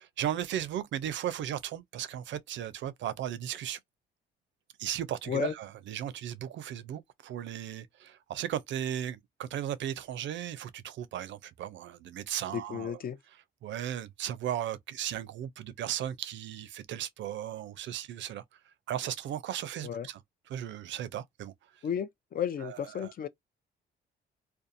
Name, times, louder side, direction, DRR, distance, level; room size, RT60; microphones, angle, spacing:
voice 1, 0.0-3.8 4.8-12.9 13.6-18.4 18.9-20.2 20.5-21.5 22.6-23.1, right 11 dB, 70° right, 0.5 m, -36 dB
voice 2, 12.5-13.2 19.8-20.1 21.8-23.3, left 8 dB, 45° left, 0.4 m, -33 dB
2.6 x 2.2 x 2.5 m
cardioid pair, 90°, 20 cm